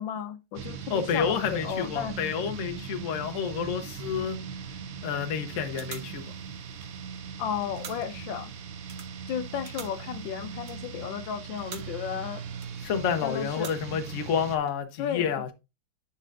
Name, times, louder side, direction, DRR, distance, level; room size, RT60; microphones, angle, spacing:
voice 1, 0.0-2.1 7.4-8.5 9.3-12.4 13.2-13.7 15.0-15.3, left 9 dB, 75° left, 1.4 m, -34 dB
sound 1, 0.5-14.6, right 7 dB, 80° right, 0.6 m, -40 dB
voice 2, 0.9-4.4 5.0-6.2 12.8-15.5, left 7 dB, 50° left, 1.0 m, -29 dB
sound 2, 5.2-5.4 5.6-7.3 7.5-8.3 8.8-12.1 12.5-13.1 13.4-14.2 14.4-14.7, right 6 dB, 50° right, 0.9 m, -47 dB
9.9 x 5.6 x 2.5 m
omnidirectional pair, 2.2 m